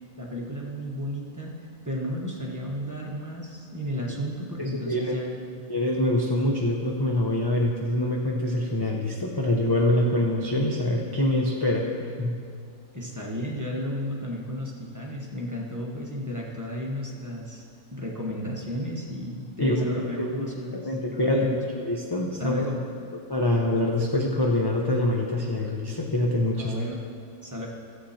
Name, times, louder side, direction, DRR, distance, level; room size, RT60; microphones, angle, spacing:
voice 1, 0.2-1.5 1.8-5.6 12.9-17.6 17.9-21.6 22.4-22.9 26.6-27.1 27.4-27.7, equal, 15° right, -2 dB, 1.1 m, -33 dB
voice 2, 4.6-5.2 5.7-11.9 12.2-12.4 19.6-21.5 21.9-22.6 23.3-26.7, left 1 dB, 25° left, -2 dB, 0.6 m, -25 dB
14.5 x 7.6 x 4.3 m, 2.3 s
omnidirectional pair, 1.6 m